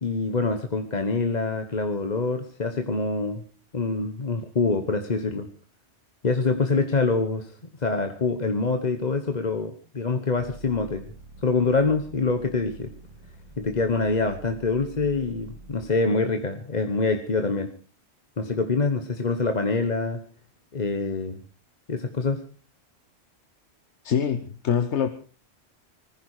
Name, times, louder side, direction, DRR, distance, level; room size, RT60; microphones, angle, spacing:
voice 1, 0.0-3.4 3.7-5.5 6.2-7.5 7.8-11.1 11.4-12.9 13.6-17.7 18.4-20.2 20.7-21.4 21.9-22.4, left 3 dB, 40° left, 7 dB, 1.2 m, -25 dB
sound 1, 10.4-16.0, right 2 dB, 25° right, 2.8 m, -46 dB
voice 2, 24.0-25.1, left 8 dB, 80° left, 10 dB, 1.3 m, -24 dB
20.0 x 14.5 x 4.8 m, 0.37 s
omnidirectional pair, 1.1 m